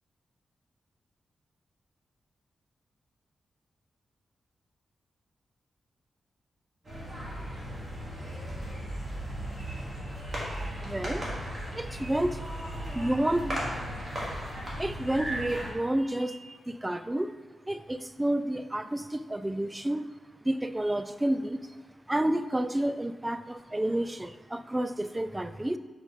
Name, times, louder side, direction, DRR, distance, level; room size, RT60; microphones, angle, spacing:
sound 1, 6.8-15.7, equal, 30° right, 2.0 m, -36 dB
voice 1, 10.8-11.3 11.7-12.4 12.9-13.6 14.8-17.3 17.7-20.1 20.4-21.6 22.1-25.8, right 1 dB, 15° right, 11 dB, 0.3 m, -30 dB
5.0 x 4.1 x 5.3 m, 1.3 s
cardioid pair, 80°, 0 cm